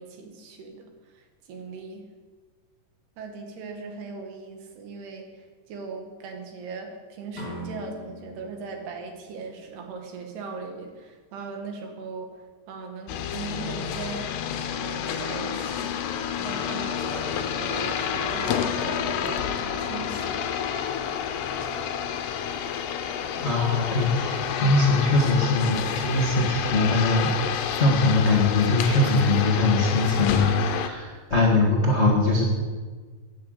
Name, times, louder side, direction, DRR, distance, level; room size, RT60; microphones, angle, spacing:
voice 1, 0.0-2.1 3.2-14.4 14.8-20.5, right 4 dB, 75° right, 3 dB, 3.8 m, -39 dB
sound 1, 7.3-10.2, equal, 15° left, 1.7 m, -41 dB
sound 2, 13.1-30.9, left 8 dB, 80° left, 2.9 m, -29 dB
Laughter, 23.3-31.2, left 2 dB, 15° right, 4.5 m, -40 dB
voice 2, 23.4-27.3 27.8-32.5, left 2 dB, 40° left, -2 dB, 0.9 m, -22 dB
11.5 x 9.6 x 8.2 m, 1.4 s
omnidirectional pair, 4.8 m